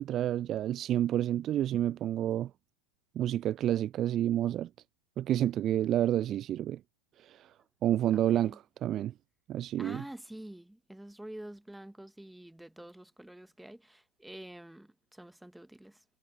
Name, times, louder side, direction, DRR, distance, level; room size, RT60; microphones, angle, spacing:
voice 1, 0.0-2.5 3.2-4.7 5.2-6.8 7.2-7.5 7.8-9.1 9.5-10.0, right 12 dB, 30° right, 0.4 m, -29 dB
voice 2, 8.1-8.6 9.8-16.0, right 1 dB, 5° right, 1.7 m, -47 dB
figure-of-eight pair, 90°, 0 cm